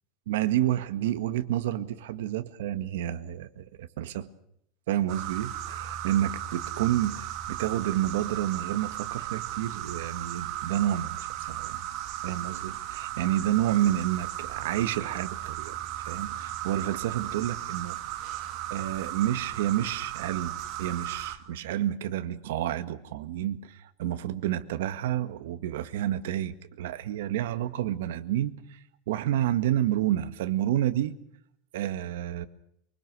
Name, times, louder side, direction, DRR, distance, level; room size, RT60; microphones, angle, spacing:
voice 1, 0.3-4.3 4.9-7.1 7.5-11.9 12.2-18.0 18.7-28.8 29.1-31.2 31.7-32.5, right 12 dB, 85° right, 12 dB, 1.8 m, -29 dB
sound 1, 5.1-21.4, right 12 dB, 40° right, 2.7 m, -36 dB
24.0 x 24.0 x 6.3 m, 0.72 s
supercardioid pair, 175°, 0 cm